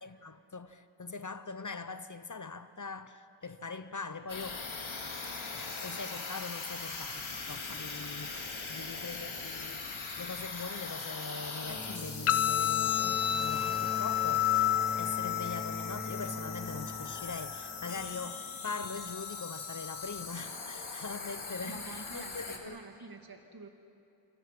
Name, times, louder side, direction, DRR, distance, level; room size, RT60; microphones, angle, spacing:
voice 1, 0.0-4.6 5.2-14.7 15.0-22.8, left 4 dB, 35° left, 0.9 m, -42 dB
sound 1, 4.3-22.6, left 4 dB, 65° left, 2.9 m, -41 dB
sound 2, 11.7-18.3, left 2 dB, 15° left, 3.2 m, -42 dB
sound 3, 12.3-20.3, left 12 dB, 85° left, 1.0 m, -32 dB
voice 2, 21.7-23.7, right 3 dB, 45° right, 2.4 m, -48 dB
26.5 x 26.0 x 6.1 m
wide cardioid pair, 95°, 50 cm